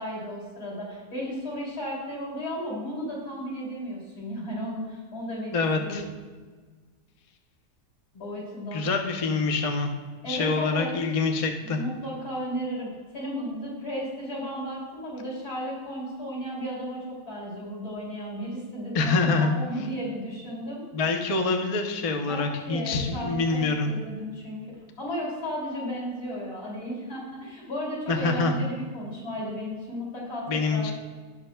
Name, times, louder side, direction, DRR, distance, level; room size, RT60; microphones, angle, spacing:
voice 1, 0.0-5.5 5.8-6.1 8.2-8.9 10.2-10.9 11.6-20.8 22.3-30.9, equal, 65° left, -5 dB, 3.4 m, -34 dB
voice 2, 5.5-6.0 8.7-9.9 10.2-11.8 18.9-19.5 19.8-19.9 20.9-23.9 28.1-28.6 30.5-30.9, left 3 dB, 45° left, 3 dB, 0.4 m, -26 dB
17.0 x 6.3 x 2.3 m, 1.4 s
omnidirectional pair, 1.8 m